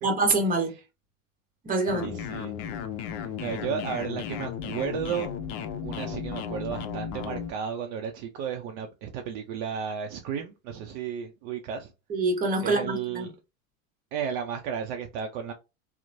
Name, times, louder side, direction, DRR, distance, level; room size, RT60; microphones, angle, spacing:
voice 1, 0.0-0.7 1.6-2.2 12.1-13.3, right 2 dB, 20° right, 0.9 m, -25 dB
sound 1, 1.9-7.5, left 8 dB, 50° left, 0.6 m, -35 dB
voice 2, 2.0-2.5 3.1-5.3 5.8-11.9 12.6-13.3 14.1-15.5, right 7 dB, 50° right, 0.5 m, -33 dB
2.9 x 2.0 x 2.5 m
hypercardioid pair, 95°, 42 cm